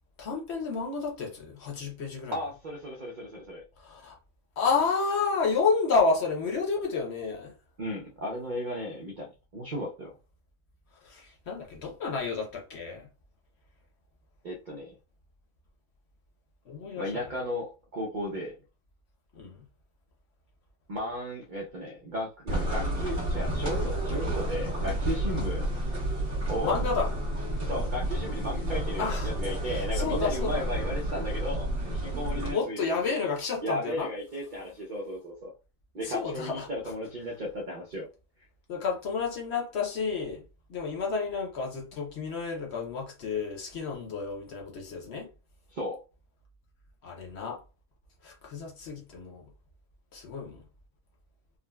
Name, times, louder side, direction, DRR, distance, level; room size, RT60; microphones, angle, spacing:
voice 1, 0.2-2.4 3.8-4.2 4.6-7.5 11.0-13.1 16.6-17.3 19.3-19.6 26.6-27.1 29.0-29.3 29.7-30.7 32.5-34.1 36.0-36.7 38.7-45.3 47.0-47.6 48.2-49.5 50.1-50.6, left 4 dB, 55° left, 0.9 m, -30 dB
voice 2, 2.3-3.6 7.8-10.1 14.4-14.9 16.9-18.6 20.9-25.7 26.5-26.8 27.6-33.2 33.6-35.5 35.9-38.1 45.7-46.0, equal, 85° right, 0.4 m, -35 dB
sound 1, 22.5-32.5, right 1 dB, 40° right, 1.4 m, -30 dB
3.6 x 2.0 x 2.2 m
omnidirectional pair, 1.6 m